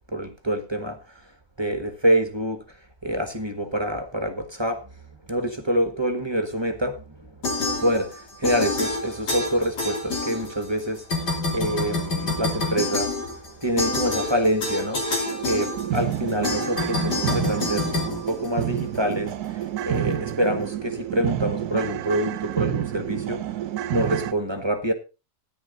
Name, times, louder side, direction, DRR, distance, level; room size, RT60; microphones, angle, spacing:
voice 1, 0.1-1.3 1.6-2.6 3.0-4.9 5.3-7.3 7.7-23.6 23.9-24.9, right 1 dB, 15° right, 1.2 m, -26 dB
sound 1, 7.4-8.2 8.4-10.8 11.1-19.0, left 3 dB, 80° left, 3.6 m, -27 dB
sound 2, 14.4-14.5 14.8-14.9 15.3-24.3, right 11 dB, 70° right, 1.3 m, -29 dB
13.5 x 10.0 x 3.9 m
omnidirectional pair, 1.8 m